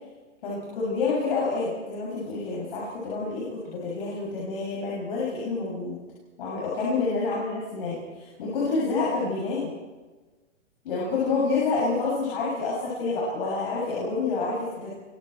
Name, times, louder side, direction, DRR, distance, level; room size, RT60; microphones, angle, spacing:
voice 1, 0.4-6.0 6.4-9.7 10.8-14.9, left 3 dB, 45° left, -5 dB, 7.2 m, -28 dB
30.0 x 24.0 x 4.5 m, 1.3 s
hypercardioid pair, 165°, 38 cm